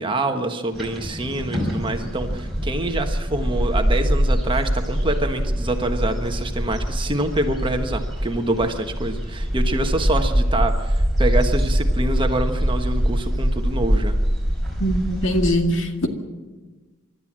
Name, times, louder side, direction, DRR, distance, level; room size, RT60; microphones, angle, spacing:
voice 1, 0.0-14.2, right 2 dB, 25° right, 5 dB, 1.3 m, -26 dB
sound 1, 0.7-15.5, equal, ahead, 5.1 m, -23 dB
voice 2, 14.8-16.1, equal, 65° left, 4 dB, 2.1 m, -21 dB
28.5 x 12.5 x 7.5 m, 1.3 s
head